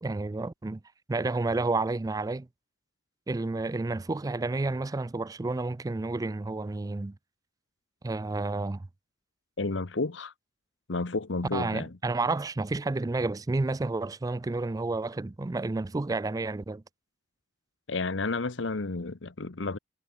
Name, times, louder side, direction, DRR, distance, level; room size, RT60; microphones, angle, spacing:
voice 1, 0.0-0.8 1.1-2.5 3.3-7.1 8.0-8.9 11.5-16.8, right 3 dB, 20° right, 0.4 m, -30 dB
voice 2, 9.6-10.3 10.9-11.9 17.9-19.8, left 3 dB, 85° left, 1.1 m, -31 dB
head